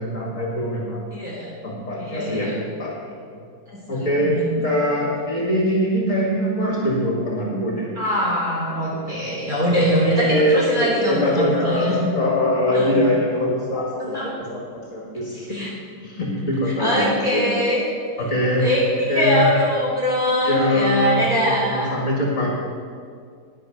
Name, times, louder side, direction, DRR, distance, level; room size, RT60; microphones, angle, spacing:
voice 1, 0.0-1.0 1.6-2.5 2.8-2.9 3.9-4.4 4.6-7.9 8.9-9.2 10.1-14.3 14.9-15.6 16.0-17.6 18.2-18.7 19.1-19.5 20.4-22.5, left 1 dB, 50° left, -3 dB, 2.4 m, -23 dB
voice 2, 1.1-1.5 2.0-2.5 3.7-4.5 6.6-6.7 8.0-11.9 12.7-12.9 14.1-14.3 15.5-15.7 16.8-17.8 18.6-18.8 19.1-21.9, equal, 30° right, -6 dB, 4.1 m, -22 dB
11.0 x 10.5 x 5.0 m, 2.1 s
omnidirectional pair, 1.8 m